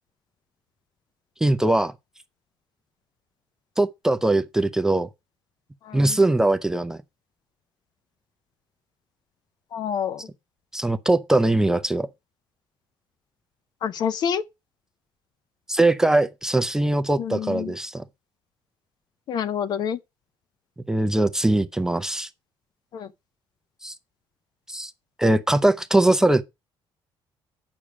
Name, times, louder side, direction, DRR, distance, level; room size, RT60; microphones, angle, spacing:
voice 1, 1.4-1.9 3.8-5.1 5.9-7.0 10.7-12.1 15.7-18.0 20.9-22.3 23.8-23.9 24.7-24.9 25.2-26.4, right 2 dB, 5° right, 0.5 m, -21 dB
voice 2, 5.8-6.2 9.7-10.2 13.8-14.4 17.2-17.7 19.3-20.0 22.9-23.1, left 8 dB, 50° left, 0.7 m, -27 dB
8.7 x 6.2 x 4.9 m
cardioid pair, 150°, 9 cm